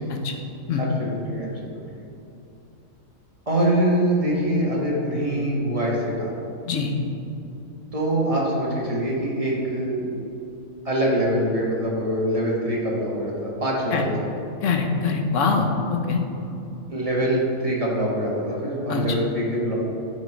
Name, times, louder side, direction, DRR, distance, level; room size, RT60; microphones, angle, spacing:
voice 1, 0.7-2.0 3.5-6.3 7.9-10.1 10.8-14.1 16.9-19.8, right 1 dB, 25° right, -4 dB, 1.6 m, -24 dB
voice 2, 14.6-16.2 18.9-19.0, left 5 dB, 70° left, 3 dB, 1.2 m, -23 dB
10.0 x 5.1 x 4.5 m, 2.8 s
omnidirectional pair, 1.4 m